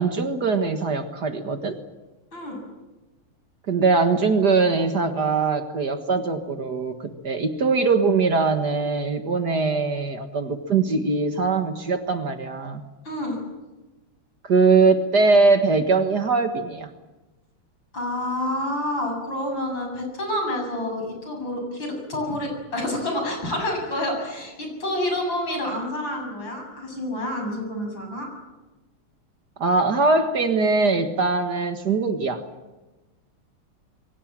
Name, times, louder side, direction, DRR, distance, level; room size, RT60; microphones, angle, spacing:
voice 1, 0.0-1.8 3.7-6.9 7.2-12.8 14.4-16.9 29.6-32.4, right 4 dB, 50° right, 7 dB, 2.0 m, -21 dB
voice 2, 13.0-13.4 17.9-28.3, left 1 dB, 60° left, 2 dB, 8.3 m, -28 dB
27.0 x 23.5 x 7.5 m, 1.1 s
omnidirectional pair, 2.3 m